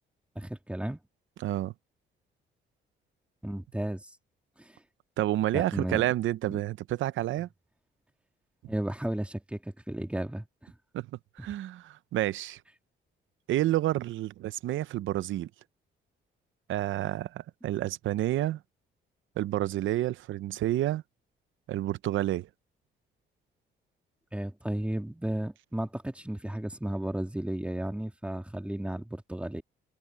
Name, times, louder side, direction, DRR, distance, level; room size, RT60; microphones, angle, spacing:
voice 1, 0.4-1.0 3.4-4.1 4.6-4.7 5.5-6.1 6.4-6.6 8.7-10.4 11.4-11.5 24.3-29.6, right 1 dB, 5° right, 2.6 m, -34 dB
voice 2, 1.4-1.7 5.2-7.5 10.9-11.1 11.4-12.6 13.5-15.5 16.7-18.6 19.4-21.0 21.7-22.5, right 14 dB, 75° right, 0.7 m, -29 dB
open air
cardioid pair, 90°, 20 cm